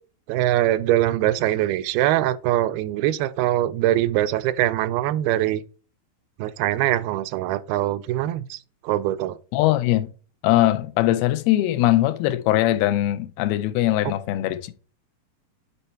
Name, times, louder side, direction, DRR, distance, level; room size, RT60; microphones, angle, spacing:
voice 1, 0.3-5.6 6.4-8.6 8.8-9.4, right 14 dB, 85° right, 2.5 m, -22 dB
voice 2, 9.5-10.1 10.4-14.8, left 15 dB, 90° left, 2.6 m, -21 dB
9.0 x 4.2 x 4.3 m
omnidirectional pair, 4.3 m